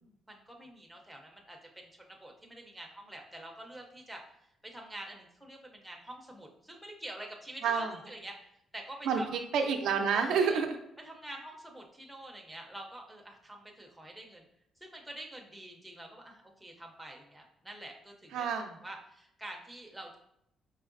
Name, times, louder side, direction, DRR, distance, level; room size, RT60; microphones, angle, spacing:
voice 1, 0.0-1.9 2.2-4.2 4.6-9.3 10.1-10.6 11.0-14.4 14.8-18.5 18.8-20.2, right 1 dB, 5° right, 0 dB, 0.5 m, -47 dB
voice 2, 7.6-8.0 9.0-10.7 18.3-18.8, right 6 dB, 80° right, 5 dB, 0.4 m, -29 dB
4.5 x 3.2 x 2.5 m, 0.76 s
cardioid pair, 170°, 0 cm